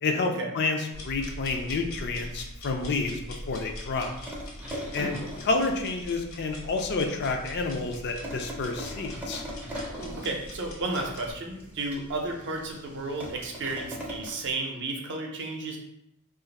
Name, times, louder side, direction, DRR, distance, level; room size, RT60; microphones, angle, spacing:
voice 1, 0.0-3.2 3.5-4.1 4.9-5.2 5.4-9.4, left 3 dB, 50° left, 4 dB, 0.4 m, -29 dB
sound 1, 0.9-11.3, left 1 dB, 70° left, 0.9 m, -42 dB
sound 2, 3.9-14.5, equal, 5° right, 0.5 m, -42 dB
voice 2, 10.2-15.8, right 2 dB, 55° right, 1 dB, 0.6 m, -33 dB
2.5 x 2.4 x 4.0 m, 0.84 s
head